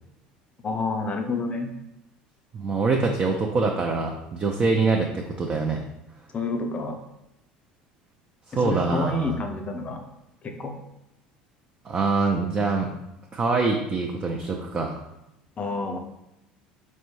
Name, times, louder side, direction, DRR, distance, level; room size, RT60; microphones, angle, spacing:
voice 1, 0.6-1.7 6.3-7.0 8.5-10.0 10.4-10.8 15.6-16.0, left 3 dB, 30° left, 5 dB, 0.5 m, -29 dB
voice 2, 2.5-5.8 8.5-9.4 11.8-12.9 13.3-15.0, right 3 dB, 30° right, 2 dB, 0.4 m, -24 dB
4.3 x 2.1 x 2.9 m, 0.88 s
hypercardioid pair, 70°, 4 cm